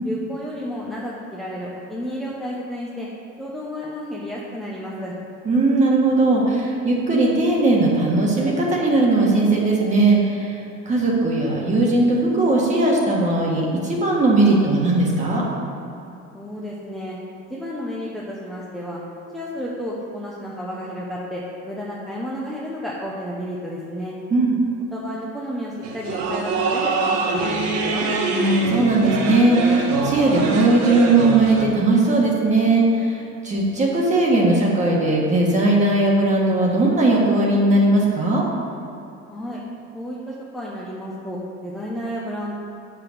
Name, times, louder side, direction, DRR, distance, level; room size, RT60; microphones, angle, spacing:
voice 1, 0.0-3.1 3.4-5.1 16.3-17.2 17.5-19.0 19.3-24.2 24.9-28.1 39.3-39.6 39.9-42.6, equal, ahead, -6 dB, 0.7 m, -32 dB
voice 2, 5.4-15.4 24.3-24.6 28.3-38.4, right 2 dB, 25° right, -2 dB, 1.6 m, -18 dB
sound 1, 25.8-31.6, right 3 dB, 70° right, 1.3 m, -24 dB
8.0 x 6.0 x 6.8 m, 2.7 s
cardioid pair, 165°, 29 cm